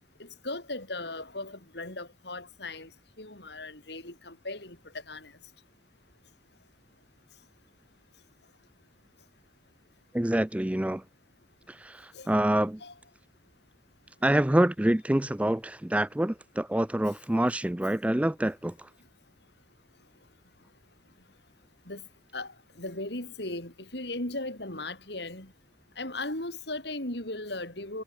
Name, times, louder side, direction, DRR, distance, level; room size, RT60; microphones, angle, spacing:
voice 1, 0.2-2.9 3.2-5.3 12.1-12.3 12.8-12.9 21.9-22.1 22.3-25.5 26.0-28.0, left 2 dB, 65° left, 4.8 m, -37 dB
voice 2, 10.1-11.0 11.7-12.8 14.2-18.9, right 1 dB, 5° right, 0.4 m, -26 dB
head